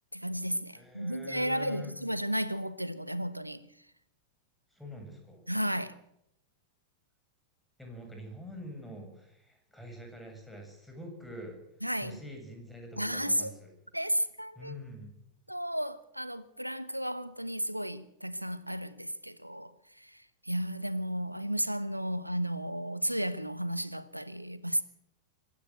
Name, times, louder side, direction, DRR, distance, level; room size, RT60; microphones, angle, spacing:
voice 1, 0.1-3.7 5.5-5.9 11.8-12.2 13.0-13.5 13.9-14.8 15.5-19.7 20.5-24.8, equal, 90° right, 1.1 m, -33 dB
voice 2, 0.7-1.9 4.7-5.4 7.8-11.6 12.0-13.7 14.6-15.1, left 1 dB, 5° left, 7.7 m, -45 dB
24.0 x 15.0 x 7.8 m
figure-of-eight pair, 90°, 0 cm